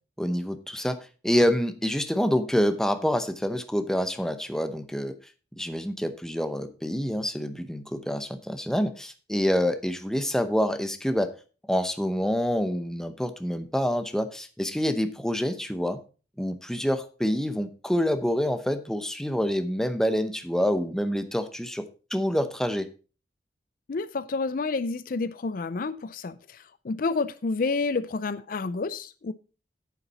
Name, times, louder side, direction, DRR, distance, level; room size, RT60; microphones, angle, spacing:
voice 1, 0.2-5.1 5.6-11.3 11.7-16.0 16.4-22.9, equal, 5° left, 0.8 m, -27 dB
voice 2, 23.9-29.3, left 4 dB, 50° left, 0.4 m, -29 dB
9.9 x 8.3 x 4.1 m
head